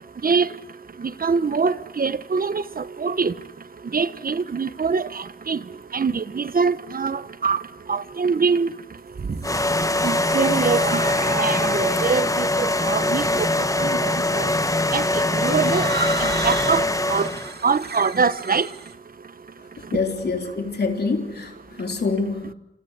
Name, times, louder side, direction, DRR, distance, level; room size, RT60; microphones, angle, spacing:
voice 1, 1.0-3.3 3.9-5.6 5.9-7.6 7.9-8.7 10.0-11.1 11.4-13.5 13.8-14.5 14.9-15.9 16.2-17.3 17.6-18.7, right 5 dB, 60° right, 1.0 m, -24 dB
sound 1, 8.9-12.4 13.3-13.7 15.3-18.9, right 3 dB, 80° right, 2.0 m, -33 dB
sound 2, 9.4-17.6, left 2 dB, 20° left, 1.1 m, -22 dB
voice 2, 19.9-22.5, left 4 dB, 90° left, 3.6 m, -26 dB
28.0 x 27.5 x 6.6 m
wide cardioid pair, 65°, 16 cm